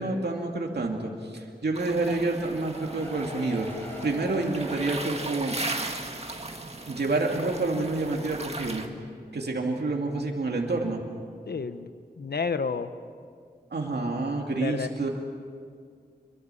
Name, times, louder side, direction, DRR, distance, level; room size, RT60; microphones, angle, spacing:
voice 1, 0.0-3.7 4.0-5.5 6.9-8.8 9.3-11.0 13.7-15.1, right 2 dB, 80° right, 0 dB, 2.5 m, -28 dB
sound 1, 1.7-8.9, right 2 dB, 40° right, 1.9 m, -37 dB
sound 2, 2.5-6.0 6.3-6.4 6.7-6.8, equal, 15° left, 3.5 m, -42 dB
voice 2, 11.5-11.9 12.2-12.9 14.6-14.9, left 5 dB, 75° left, 10 dB, 1.0 m, -30 dB
26.0 x 23.5 x 7.1 m, 2.1 s
wide cardioid pair, 85°, 17 cm